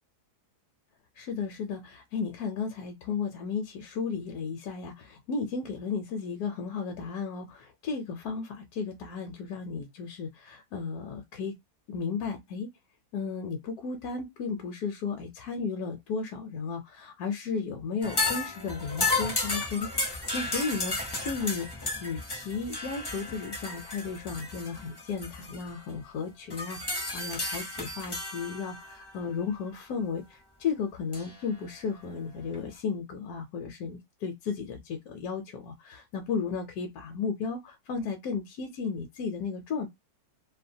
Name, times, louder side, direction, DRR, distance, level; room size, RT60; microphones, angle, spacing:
voice 1, 1.1-11.5 11.9-12.7 13.1-39.9, left 5 dB, 75° left, 1.0 m, -34 dB
sound 1, 18.0-26.0 26.5-29.3 31.1-31.4 32.5-32.6, left 2 dB, 30° left, 0.4 m, -33 dB
2.8 x 2.1 x 2.6 m
omnidirectional pair, 1.7 m